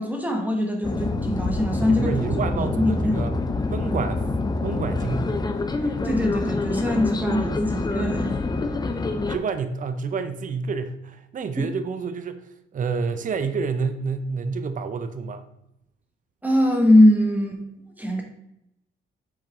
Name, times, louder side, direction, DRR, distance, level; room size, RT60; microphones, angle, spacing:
voice 1, 0.0-2.1 2.5-3.2 6.0-8.3 11.6-11.7 16.4-17.6 18.0-18.2, left 1 dB, 10° right, 2 dB, 1.6 m, -21 dB
sound 1, 0.8-9.4, left 3 dB, 20° left, 0.7 m, -26 dB
voice 2, 1.8-3.3 3.7-4.2 4.6-5.3 9.3-12.4 12.7-15.4, right 5 dB, 40° right, 9 dB, 0.7 m, -28 dB
7.8 x 4.6 x 3.7 m, 0.81 s
cardioid pair, 90°, 20 cm